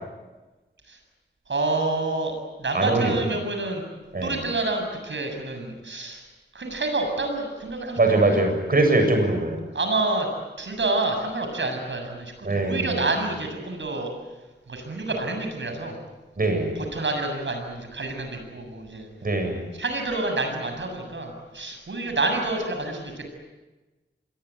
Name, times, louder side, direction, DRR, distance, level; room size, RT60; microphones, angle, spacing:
voice 1, 1.5-2.3 2.6-3.8 4.2-6.2 6.5-8.4 9.7-10.3 10.6-14.1 14.7-16.0 16.4-19.1 19.7-23.2, right 2 dB, 75° right, 5 dB, 7.4 m, -28 dB
voice 2, 2.7-3.1 4.1-4.4 8.0-9.6 12.4-13.1 16.4-16.7 19.2-19.6, right 2 dB, 50° right, 5 dB, 7.6 m, -22 dB
27.0 x 22.0 x 9.6 m, 1.2 s
wide cardioid pair, 85°, 19 cm